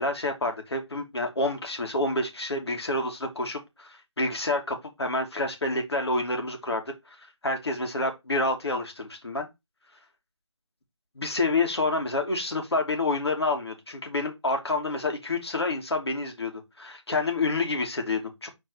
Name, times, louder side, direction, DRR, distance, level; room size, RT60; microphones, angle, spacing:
voice 1, 0.0-7.2 7.4-9.5 11.2-18.5, left 2 dB, 55° left, 2.5 m, -28 dB
5.6 x 4.3 x 4.7 m
figure-of-eight pair, 180°, 16 cm